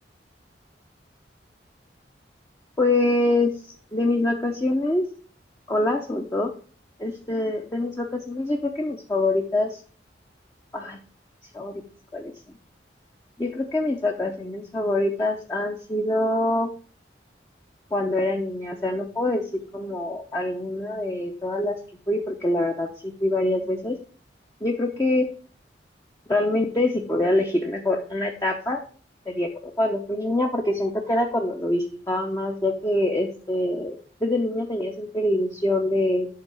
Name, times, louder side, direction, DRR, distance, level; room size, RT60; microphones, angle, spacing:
voice 1, 2.8-3.5 3.9-5.0 5.7-6.5 7.0-9.8 10.7-11.0 11.5-11.8 12.1-12.3 13.4-16.7 17.9-19.4 19.7-21.8 22.1-24.0 24.6-25.3 26.3-28.8 29.3-36.3, left 1 dB, 20° left, 1 dB, 0.7 m, -25 dB
8.7 x 3.6 x 6.0 m, 0.41 s
head